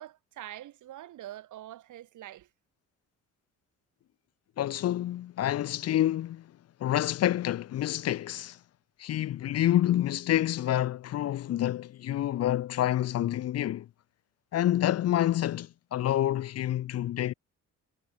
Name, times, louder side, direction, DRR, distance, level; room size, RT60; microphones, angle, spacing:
voice 1, 0.0-2.5, right 13 dB, 80° right, 3.4 m, -44 dB
voice 2, 4.6-6.5 6.8-8.6 9.0-13.9 14.5-17.3, left 12 dB, 55° left, 0.6 m, -28 dB
cardioid pair, 90°, 30 cm